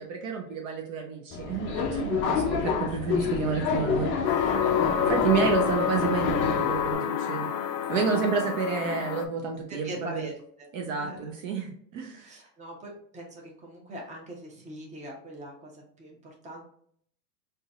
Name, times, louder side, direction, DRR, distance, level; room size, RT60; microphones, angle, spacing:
voice 1, 0.0-4.6 5.1-7.5 7.9-10.2 10.7-12.3, right 5 dB, 50° right, 1 dB, 0.8 m, -30 dB
Subway metro underground, 1.3-6.9, left 5 dB, 25° left, 0.4 m, -28 dB
sound 1, 4.2-9.2, left 9 dB, 75° left, 0.6 m, -28 dB
voice 2, 4.7-5.1 8.1-8.3 9.7-10.7 11.0-11.3 12.2-16.6, equal, 15° right, -1 dB, 0.9 m, -42 dB
3.8 x 2.6 x 2.4 m, 0.63 s
hypercardioid pair, 110°, 49 cm